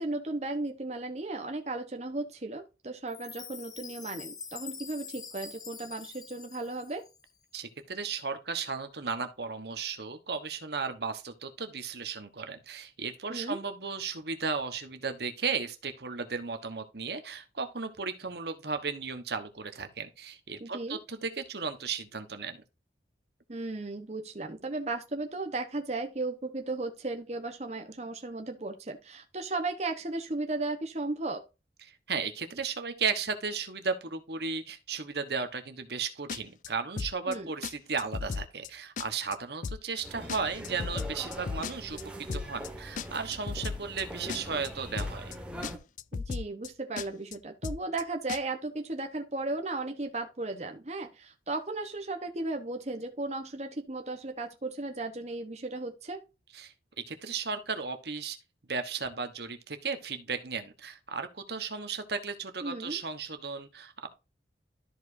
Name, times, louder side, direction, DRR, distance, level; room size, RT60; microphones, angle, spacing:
voice 1, 0.0-7.0 13.3-13.6 20.6-21.0 23.5-31.4 37.3-37.5 46.1-56.2 62.6-63.0, right 2 dB, 35° right, 1.0 m, -35 dB
Chime, 3.1-7.3, left 6 dB, 20° left, 0.7 m, -45 dB
voice 2, 7.5-22.6 31.9-42.0 42.3-45.3 56.5-56.7 57.1-58.4 58.7-64.1, right 5 dB, 60° right, 1.2 m, -35 dB
sound 1, 36.3-36.7 37.0-37.4 37.6-37.7 38.0-38.7 39.0-39.4 39.6-40.0 40.3-42.0 42.3-42.7 43.0-44.0 44.3-44.7 45.0-45.4 45.6-45.7 46.0-46.7 47.0-47.4 47.6-48.0 48.3-48.4, left 5 dB, 45° left, 0.3 m, -35 dB
sound 2, 40.0-45.8, equal, 5° right, 1.5 m, -42 dB
13.0 x 4.9 x 2.7 m
head